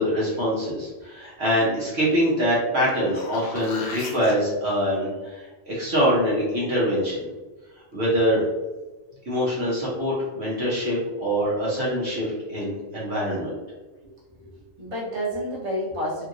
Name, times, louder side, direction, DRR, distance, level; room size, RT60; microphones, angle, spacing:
voice 1, 0.0-7.3 7.9-8.5 9.3-13.6, equal, 60° right, -7 dB, 1.0 m, -24 dB
sound 1, 2.9-4.3 9.1-9.2, left 3 dB, 65° left, 0.8 m, -36 dB
voice 2, 14.0-16.3, equal, 30° right, -7 dB, 0.9 m, -31 dB
3.0 x 2.7 x 2.5 m, 1.2 s
omnidirectional pair, 1.3 m